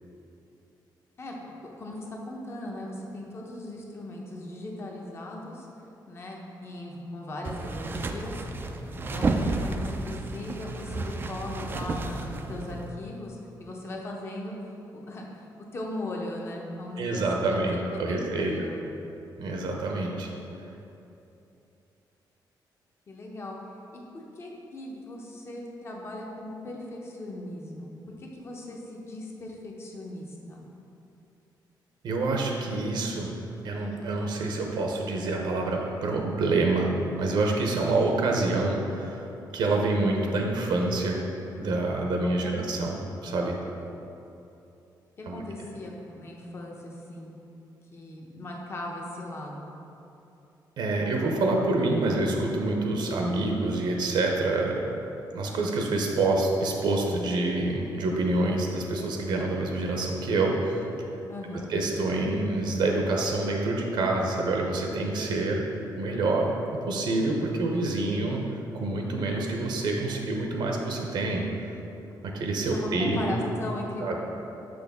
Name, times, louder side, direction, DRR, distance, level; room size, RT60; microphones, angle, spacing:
voice 1, 1.2-5.7 6.1-8.4 8.9-14.6 14.9-15.5 15.7-18.8 23.1-23.6 23.9-27.9 28.2-30.6 42.2-42.7 45.3-47.4 47.9-49.7 61.3-61.7 72.7-74.2, left 1 dB, 30° left, -1 dB, 0.8 m, -38 dB
sound 1, 7.4-12.9, right 3 dB, 25° right, 0.3 m, -32 dB
voice 2, 17.0-18.5 19.4-20.3 32.0-33.3 33.6-39.3 39.5-41.2 41.5-43.6 45.3-45.4 50.8-54.9 55.3-60.8 61.7-65.7 66.0-66.5 66.9-68.5 68.7-71.4 72.2-73.4 74.0-74.2, right 2 dB, 70° right, 1 dB, 0.7 m, -27 dB
6.3 x 6.1 x 3.5 m, 2.8 s
wide cardioid pair, 165°, 8 cm